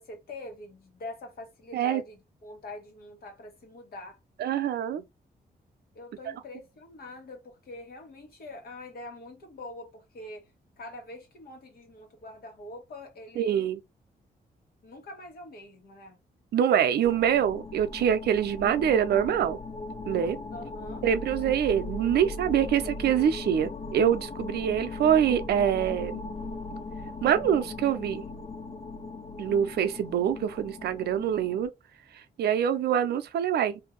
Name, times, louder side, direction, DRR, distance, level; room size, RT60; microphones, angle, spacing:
voice 1, 0.0-4.2 5.9-10.5 10.8-13.7 14.8-16.2 20.5-21.0, left 2 dB, 70° left, 1.4 m, -44 dB
voice 2, 4.4-5.0 13.4-13.8 16.5-19.6 20.1-20.4 21.0-26.2 27.2-28.2 29.4-31.7 32.4-33.8, right 9 dB, 90° right, 0.5 m, -25 dB
sound 1, 17.0-31.7, left 3 dB, 35° left, 0.4 m, -38 dB
2.8 x 2.6 x 3.7 m
cardioid pair, 115°, 16 cm